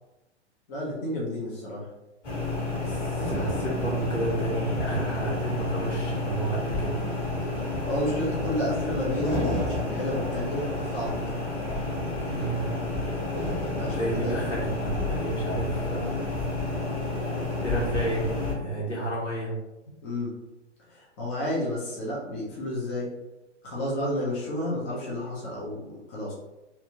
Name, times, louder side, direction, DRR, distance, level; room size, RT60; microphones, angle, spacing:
voice 1, 0.7-1.9 7.9-11.4 13.8-14.5 20.0-20.4 20.9-23.1 23.6-26.3, left 1 dB, 10° left, -6 dB, 0.3 m, -31 dB
sound 1, 2.2-18.5, left 2 dB, 30° left, 1.3 m, -30 dB
voice 2, 2.8-7.0 12.3-12.8 13.9-16.3 17.6-19.6, right 2 dB, 80° left, -5 dB, 1.4 m, -31 dB
2.7 x 2.3 x 2.8 m, 0.97 s
figure-of-eight pair, 115°, 36 cm